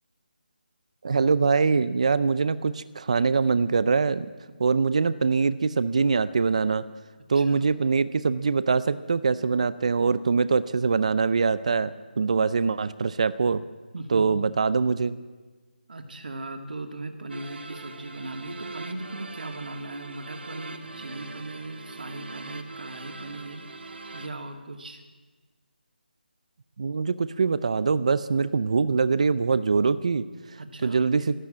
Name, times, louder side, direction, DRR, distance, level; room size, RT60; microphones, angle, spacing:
voice 1, 1.0-4.3 4.6-6.8 7.3-13.6 14.1-15.2 26.8-31.4, right 5 dB, 40° right, 15 dB, 0.5 m, -23 dB
voice 2, 7.3-7.7 13.9-14.4 15.9-23.7 24.1-25.0 30.6-31.1, right 2 dB, 60° right, 5 dB, 2.2 m, -38 dB
sound 1, 17.3-24.3, right 3 dB, 80° right, 1.7 m, -42 dB
13.5 x 12.5 x 8.6 m, 1.3 s
figure-of-eight pair, 170°, 6 cm